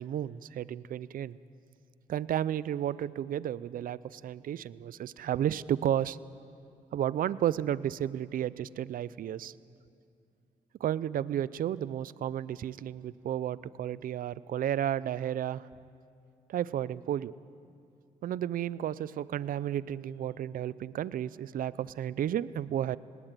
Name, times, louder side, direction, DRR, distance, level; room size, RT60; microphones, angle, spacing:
voice 1, 0.0-1.4 2.1-6.2 6.9-9.5 10.8-15.7 16.5-17.3 18.2-23.0, right 10 dB, 70° right, 19 dB, 0.5 m, -32 dB
19.0 x 18.0 x 9.1 m, 2.4 s
cardioid pair, 65°, 15 cm